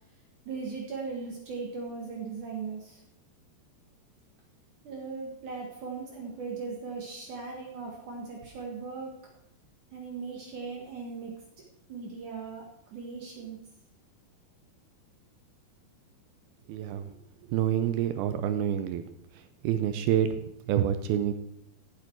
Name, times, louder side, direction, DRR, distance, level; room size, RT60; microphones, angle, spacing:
voice 1, 0.5-3.0 4.8-9.1 9.9-11.4 11.9-13.6, right 4 dB, 55° right, 0 dB, 2.6 m, -38 dB
voice 2, 16.7-17.1 17.5-19.0 19.6-21.3, right 10 dB, 80° right, 10 dB, 2.4 m, -27 dB
15.5 x 7.8 x 4.6 m, 0.80 s
omnidirectional pair, 4.8 m